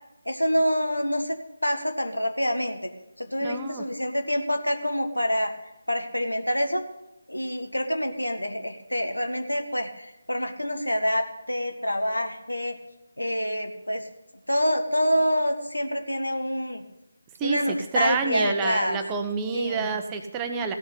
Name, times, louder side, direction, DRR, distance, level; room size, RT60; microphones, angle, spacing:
voice 1, 0.3-1.4 1.6-2.9 3.2-5.5 5.9-6.8 7.3-12.8 13.2-14.0 14.5-16.8 17.4-19.0 19.5-19.9, equal, 90° left, 6 dB, 1.7 m, -26 dB
voice 2, 3.4-3.8 17.4-20.8, right 5 dB, 15° right, 5 dB, 1.0 m, -28 dB
15.5 x 6.5 x 8.0 m, 0.91 s
figure-of-eight pair, 155°, 0 cm